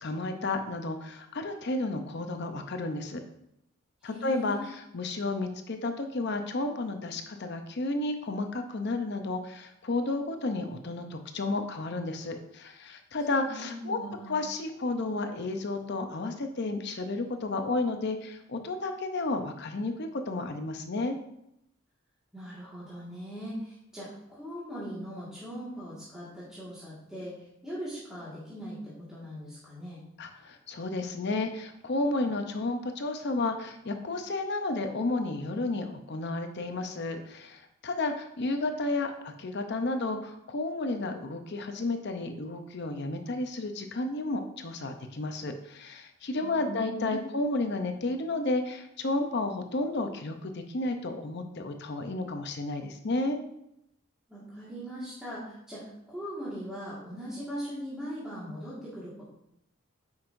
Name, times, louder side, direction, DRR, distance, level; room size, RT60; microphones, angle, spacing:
voice 1, 0.0-3.2 4.0-14.0 14.3-21.2 30.2-53.4, left 2 dB, 55° left, 6 dB, 0.6 m, -32 dB
voice 2, 4.0-4.7 13.4-14.4 22.3-30.0 46.4-47.2 54.3-59.2, equal, 5° right, -10 dB, 1.8 m, -40 dB
8.8 x 5.5 x 2.6 m, 0.78 s
head